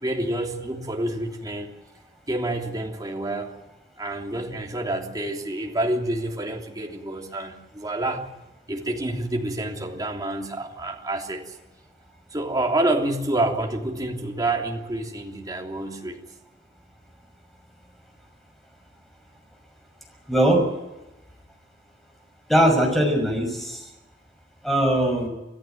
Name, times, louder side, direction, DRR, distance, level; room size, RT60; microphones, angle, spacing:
voice 1, 0.0-1.7 2.3-3.6 4.0-8.3 8.7-11.4 12.3-16.2, right 1 dB, 20° right, 1 dB, 3.2 m, -28 dB
voice 2, 20.3-20.6 22.5-23.9 24.6-25.3, right 1 dB, ahead, 2 dB, 6.0 m, -20 dB
25.5 x 15.0 x 9.2 m, 1.0 s
head